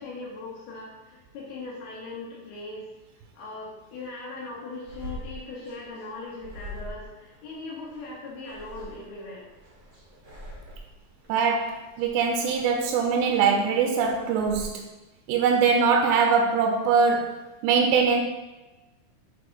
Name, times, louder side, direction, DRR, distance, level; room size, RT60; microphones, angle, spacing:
voice 1, 0.0-2.9 3.3-9.5, left 3 dB, 80° left, -7 dB, 3.3 m, -39 dB
sound 1, 4.9-14.7, equal, 70° right, 0.7 m, -44 dB
voice 2, 11.3-14.9 15.3-18.2, right 5 dB, 90° right, 3 dB, 2.5 m, -22 dB
8.3 x 3.5 x 3.9 m, 1.1 s
omnidirectional pair, 4.5 m